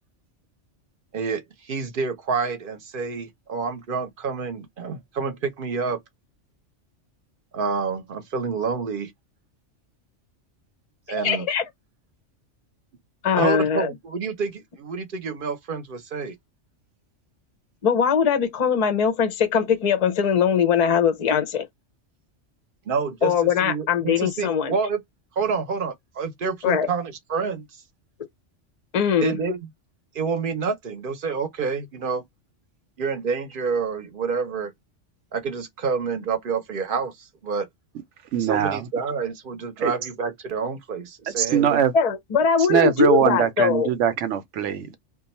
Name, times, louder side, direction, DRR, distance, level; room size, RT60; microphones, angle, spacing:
voice 1, 1.1-6.0 7.5-9.1 11.1-11.5 13.4-16.3 22.9-23.3 23.6-25.0 25.4-27.8 29.2-29.6 30.1-32.2 33.0-34.7 35.3-37.7 38.4-41.8, right 5 dB, 50° right, 0.8 m, -28 dB
voice 2, 11.1-11.6 13.2-13.9 17.8-21.7 23.2-24.7 26.6-26.9 28.9-29.4 41.9-43.9, left 7 dB, 45° left, 0.5 m, -21 dB
voice 3, 38.3-38.9 39.8-39.9 41.3-41.9 42.7-45.0, right 9 dB, 75° right, 1.0 m, -22 dB
2.5 x 2.2 x 4.0 m
omnidirectional pair, 1.3 m